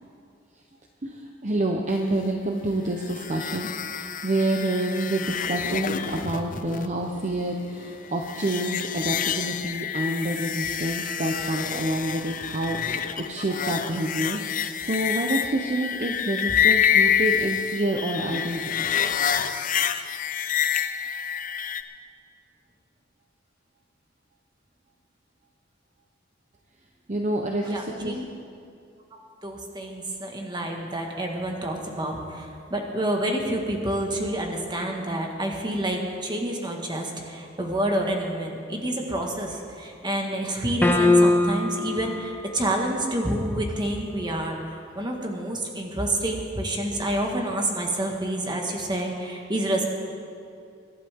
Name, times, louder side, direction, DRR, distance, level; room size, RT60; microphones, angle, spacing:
voice 1, 1.0-18.8 27.1-28.2, right 1 dB, 40° right, 2 dB, 0.9 m, -28 dB
sound 1, 3.0-21.8, left 8 dB, 45° left, 0.6 m, -27 dB
voice 2, 27.6-28.2 29.1-44.6 44.9-49.8, right 1 dB, 25° right, 1 dB, 1.7 m, -28 dB
sound 2, 40.8-41.9, left 2 dB, 10° left, 0.7 m, -18 dB
23.5 x 12.0 x 3.7 m, 2.5 s
head